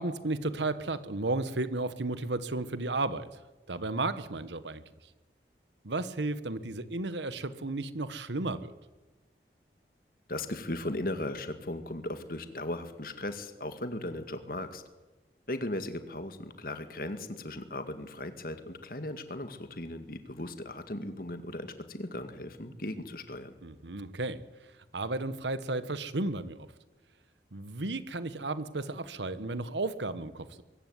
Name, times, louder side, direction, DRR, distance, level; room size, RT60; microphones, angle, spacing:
voice 1, 0.0-3.3 3.7-4.8 5.8-8.7 23.6-24.4 24.9-26.7 27.5-30.6, right 2 dB, 90° right, 13 dB, 1.4 m, -33 dB
voice 2, 10.3-14.8 15.5-23.6, left 1 dB, 55° left, 9 dB, 2.0 m, -37 dB
23.0 x 15.0 x 9.5 m, 1.2 s
head